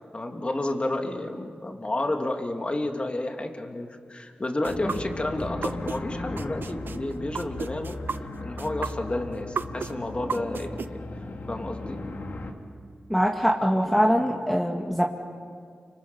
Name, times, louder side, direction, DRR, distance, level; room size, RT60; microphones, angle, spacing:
voice 1, 0.1-8.0 8.4-11.0 11.5-12.0 14.2-14.3, left 1 dB, 35° left, 3 dB, 3.0 m, -31 dB
sound 1, 4.6-6.0 6.4-10.9, right 5 dB, 75° right, 0.8 m, -32 dB
sound 2, 4.7-12.5, left 2 dB, 65° left, 2.8 m, -37 dB
voice 2, 13.1-15.1, equal, ahead, 0 dB, 2.1 m, -23 dB
30.0 x 26.0 x 7.2 m, 2.1 s
cardioid pair, 65°, 3 cm